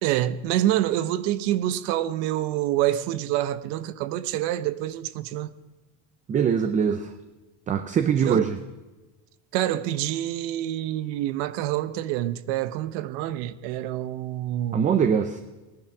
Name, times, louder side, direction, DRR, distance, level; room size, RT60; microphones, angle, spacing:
voice 1, 0.0-5.5 8.3-8.4 9.5-14.9, right 13 dB, 80° right, 0.9 m, -27 dB
voice 2, 6.3-7.1 7.7-8.6 14.7-15.4, right 7 dB, 20° right, 0.4 m, -22 dB
17.0 x 10.5 x 6.0 m
cardioid pair, 160°, 40 cm